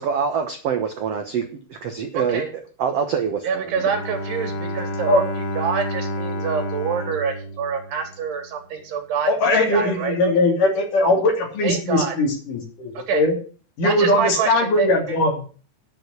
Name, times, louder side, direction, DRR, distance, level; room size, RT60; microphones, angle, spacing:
voice 1, 0.0-3.7, right 6 dB, 70° right, 5 dB, 1.5 m, -25 dB
voice 2, 2.1-2.5 3.4-5.3 5.6-10.3 11.6-12.2 13.0-13.2 13.8-15.2, right 7 dB, 85° right, 5 dB, 4.6 m, -26 dB
Bowed string instrument, 3.7-8.5, left 1 dB, 85° left, 3.4 m, -30 dB
voice 3, 9.3-13.4 13.8-15.5, left 2 dB, 55° left, 2 dB, 4.3 m, -20 dB
9.5 x 8.1 x 8.4 m, 0.40 s
omnidirectional pair, 4.6 m